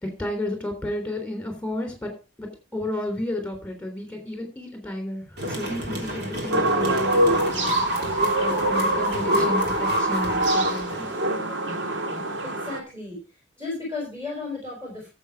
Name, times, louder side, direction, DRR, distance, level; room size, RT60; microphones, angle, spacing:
voice 1, 0.0-2.1 2.4-7.8 8.2-11.1, left 1 dB, 5° left, 3 dB, 3.5 m, -32 dB
sound 1, 5.4-11.4, right 1 dB, 60° right, 3.2 m, -27 dB
sound 2, 6.5-12.8, right 1 dB, 85° right, 1.9 m, -25 dB
voice 2, 12.4-13.2 13.6-15.1, left 3 dB, 15° right, -3 dB, 5.0 m, -34 dB
12.5 x 7.7 x 4.7 m, 0.32 s
head